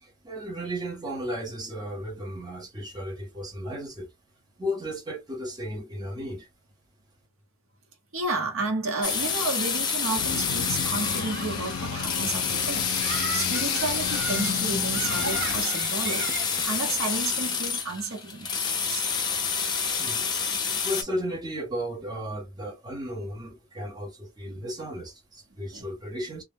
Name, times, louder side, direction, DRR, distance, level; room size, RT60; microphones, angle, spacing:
voice 1, 0.0-4.1 4.6-6.5 20.0-20.3 20.6-26.4, equal, 20° right, 0.7 m, -34 dB
voice 2, 8.1-19.0 24.5-24.7 25.7-25.8, right 3 dB, 75° right, 0.9 m, -32 dB
sound 1, 9.0-21.0, left 6 dB, 20° left, 0.5 m, -28 dB
sound 2, 10.1-15.7, left 8 dB, 80° left, 0.4 m, -33 dB
sound 3, 10.7-17.1, right 5 dB, 55° right, 0.4 m, -37 dB
2.3 x 2.1 x 3.4 m
head